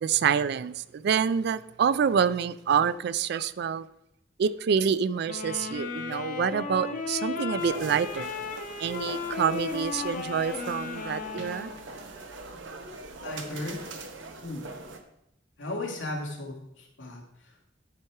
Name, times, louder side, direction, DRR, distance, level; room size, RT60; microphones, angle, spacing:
voice 1, 0.0-3.9 4.4-8.3 8.8-11.7, right 7 dB, 60° right, 0.3 m, -27 dB
sound 1, 5.3-11.8, left 4 dB, 45° left, 1.1 m, -35 dB
sound 2, 7.6-15.0, right 3 dB, 85° right, 1.0 m, -42 dB
voice 2, 13.2-13.8 14.4-14.7 15.6-17.7, left 2 dB, 85° left, 2.0 m, -36 dB
10.5 x 4.6 x 4.7 m
head